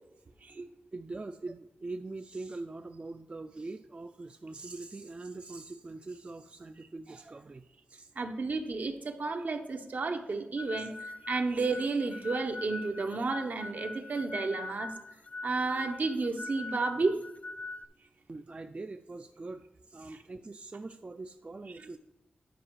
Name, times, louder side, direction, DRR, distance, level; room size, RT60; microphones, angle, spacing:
voice 1, 0.9-8.1 9.7-9.8 18.3-22.0, right 3 dB, 35° right, 8 dB, 0.4 m, -43 dB
voice 2, 8.1-14.9 15.4-17.2 20.1-20.2 21.7-22.0, right 3 dB, 65° right, 5 dB, 0.9 m, -32 dB
sound 1, 10.6-17.8, left 3 dB, 45° left, 0.6 m, -42 dB
10.0 x 4.7 x 4.7 m, 0.92 s
cardioid pair, 60°, 3 cm